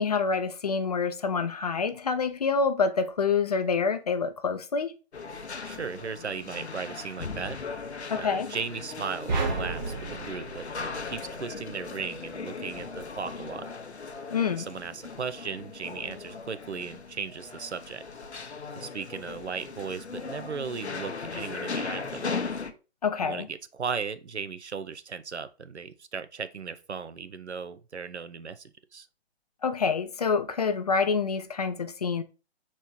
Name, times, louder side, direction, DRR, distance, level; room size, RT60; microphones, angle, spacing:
voice 1, 0.0-4.9 8.1-8.5 14.3-14.7 23.0-23.5 29.6-32.2, left 5 dB, 40° left, 0.4 m, -27 dB
sound 1, 5.1-22.7, left 4 dB, 85° left, 0.7 m, -38 dB
voice 2, 5.6-7.6 8.2-10.7 11.1-13.6 14.5-18.0 18.7-22.5 23.2-29.1, right 5 dB, 90° right, 0.6 m, -37 dB
sound 2, 9.3-11.7, right 4 dB, 45° right, 0.8 m, -32 dB
4.2 x 3.0 x 3.6 m
figure-of-eight pair, 135°, 33 cm